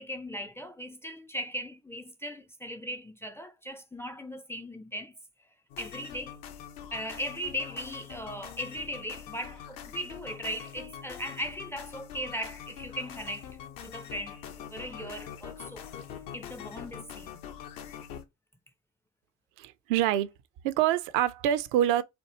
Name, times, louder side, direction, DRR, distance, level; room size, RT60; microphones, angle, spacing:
voice 1, 0.0-5.2 5.8-6.4 6.9-13.5 13.8-15.9 16.3-17.4, equal, 5° left, 0.4 m, -38 dB
sound 1, 5.7-18.2, left 8 dB, 65° left, 0.7 m, -44 dB
voice 2, 19.6-20.3 20.6-22.0, right 11 dB, 65° right, 0.5 m, -26 dB
4.3 x 2.6 x 2.9 m
figure-of-eight pair, 45°, 38 cm